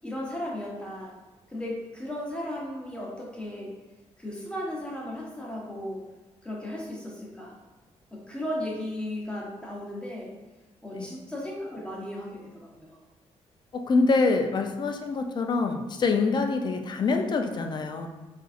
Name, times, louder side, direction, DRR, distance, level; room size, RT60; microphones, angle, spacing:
voice 1, 0.0-1.2 1.5-3.7 4.2-6.0 6.4-7.6 8.1-10.3 10.8-13.0, left 1 dB, 10° left, -3 dB, 0.8 m, -35 dB
voice 2, 13.7-18.1, left 3 dB, 40° left, 5 dB, 0.4 m, -25 dB
3.8 x 2.5 x 2.4 m, 1.1 s
cardioid pair, 100°, 12 cm